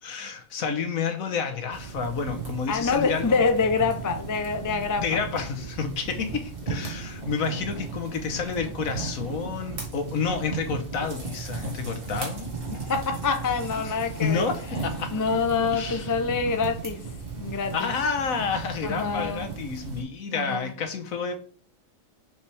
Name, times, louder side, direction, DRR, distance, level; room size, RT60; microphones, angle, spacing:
voice 1, 0.0-3.4 5.0-12.5 13.8-15.1 15.7-16.1 17.7-21.4, left 5 dB, 75° left, 1.4 m, -30 dB
sound 1, 1.7-20.0, right 4 dB, 40° right, 2.0 m, -36 dB
voice 2, 2.7-5.0 12.9-14.5 15.1-17.0 17.4-17.9 18.8-19.5 20.3-20.7, left 5 dB, 30° left, 0.4 m, -26 dB
sound 2, 10.5-16.1, right 1 dB, 65° right, 2.4 m, -47 dB
6.6 x 5.5 x 3.4 m
omnidirectional pair, 1.4 m